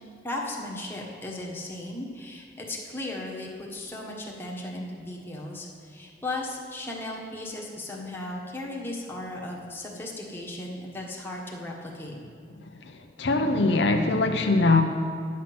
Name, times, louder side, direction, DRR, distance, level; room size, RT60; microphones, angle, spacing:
voice 1, 0.2-12.1, left 1 dB, 10° left, -3 dB, 1.5 m, -36 dB
voice 2, 12.7-14.8, left 3 dB, 70° left, 4 dB, 0.7 m, -22 dB
10.0 x 7.4 x 6.1 m, 2.4 s
head